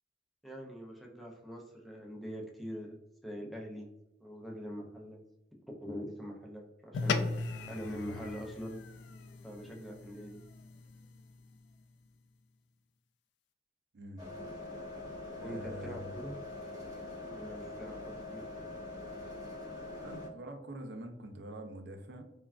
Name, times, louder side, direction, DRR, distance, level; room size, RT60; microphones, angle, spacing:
voice 1, 0.4-3.0 3.2-3.9 4.2-5.2 5.8-7.3 7.7-8.8 9.4-10.4 15.4-16.3 17.3-18.4, equal, ahead, -2 dB, 0.4 m, -43 dB
sound 1, 6.9-11.6, left 4 dB, 90° left, 0.3 m, -38 dB
sound 2, 14.2-20.3, left 2 dB, 45° right, 1.2 m, -43 dB
voice 2, 15.3-16.1 20.0-22.2, right 1 dB, 75° right, 6 dB, 0.4 m, -45 dB
3.2 x 2.3 x 2.4 m, 0.90 s
head